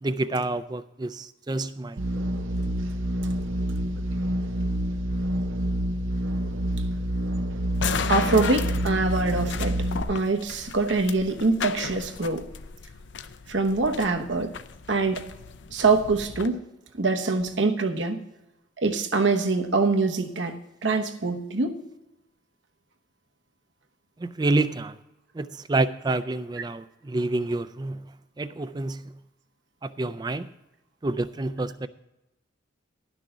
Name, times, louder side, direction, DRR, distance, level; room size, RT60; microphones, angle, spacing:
voice 1, 0.0-2.1 24.2-25.0 25.3-28.1 28.4-29.1 29.8-30.5 31.0-31.9, right 2 dB, 20° right, 0.4 m, -28 dB
sound 1, 2.0-10.0, equal, 85° right, 0.7 m, -27 dB
sound 2, 7.7-16.5, left 6 dB, 65° left, 0.5 m, -35 dB
voice 2, 8.1-9.8 10.1-12.5 13.5-14.5 14.9-15.2 15.7-16.6 16.9-18.2 18.8-21.8, right 3 dB, 70° right, 1.1 m, -24 dB
11.5 x 6.2 x 6.7 m
head